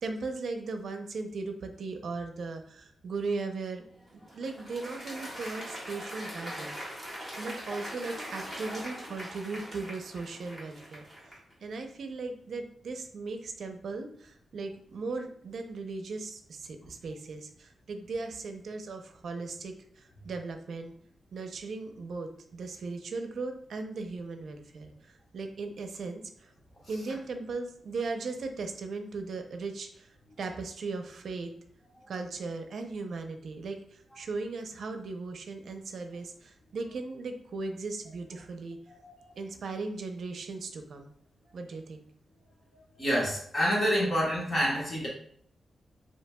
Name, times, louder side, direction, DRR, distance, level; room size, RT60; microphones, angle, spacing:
voice 1, 0.0-3.9 4.1-7.1 7.4-11.0 11.6-20.9 21.3-26.5 26.9-30.1 30.4-31.5 32.1-38.8 39.4-41.1 41.5-42.0, right 3 dB, 60° right, 6 dB, 0.6 m, -37 dB
Applause, 3.9-11.5, equal, 10° left, 1.5 m, -41 dB
voice 2, 43.0-45.1, equal, 35° left, -5 dB, 1.3 m, -27 dB
7.5 x 2.8 x 2.3 m, 0.64 s
wide cardioid pair, 180°, 0 cm